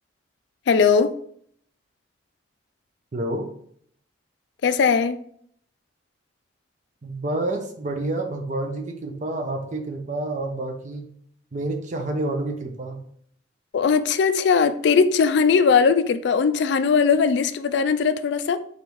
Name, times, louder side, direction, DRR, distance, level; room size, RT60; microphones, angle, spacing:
voice 1, 0.7-1.1 4.6-5.2 13.7-18.6, left 5 dB, 60° left, 0.3 m, -19 dB
voice 2, 3.1-3.5 7.0-11.1 11.5-13.0, right 2 dB, 40° right, 0.5 m, -28 dB
3.9 x 3.5 x 3.0 m
head